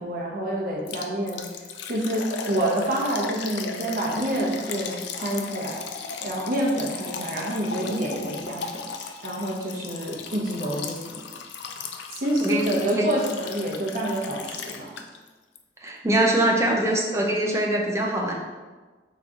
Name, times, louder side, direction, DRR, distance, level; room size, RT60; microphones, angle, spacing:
voice 1, 0.0-1.5 1.9-5.8 6.2-8.8 9.2-11.2 12.1-14.9, right 1 dB, 50° right, -3 dB, 1.0 m, -27 dB
Liquid, 0.9-15.3 15.5-15.6 16.1-16.2, left 5 dB, 70° left, 0.4 m, -36 dB
voice 2, 15.8-18.3, right 1 dB, 15° right, -1 dB, 0.5 m, -23 dB
3.9 x 3.1 x 3.6 m, 1.3 s
head